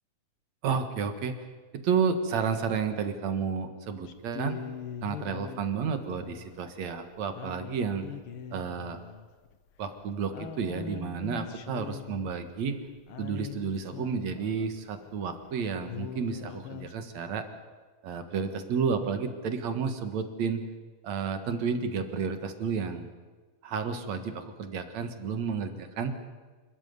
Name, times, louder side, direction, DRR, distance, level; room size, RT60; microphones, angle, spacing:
voice 1, 0.6-1.3 1.7-4.6 5.0-8.1 8.5-9.0 9.8-12.8 13.2-17.4 18.0-20.6 21.0-23.1 23.6-26.1, right 6 dB, 65° right, 8 dB, 2.7 m, -31 dB
sound 1, 4.1-15.1 15.5-15.6 15.8-16.9, left 8 dB, 60° left, 1.6 m, -42 dB
27.5 x 13.5 x 9.5 m, 1.4 s
omnidirectional pair, 3.6 m